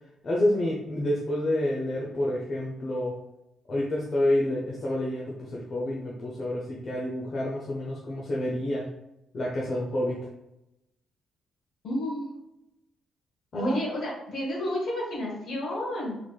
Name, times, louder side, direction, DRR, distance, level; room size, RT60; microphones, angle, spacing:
voice 1, 0.2-3.1 3.7-8.8 9.3-10.2 13.5-13.8, left 1 dB, 40° left, -4 dB, 0.6 m, -28 dB
voice 2, 11.8-12.3 13.6-16.2, left 1 dB, 55° left, -3 dB, 1.4 m, -31 dB
3.9 x 3.2 x 2.3 m, 0.89 s
cardioid pair, 145°, 0 cm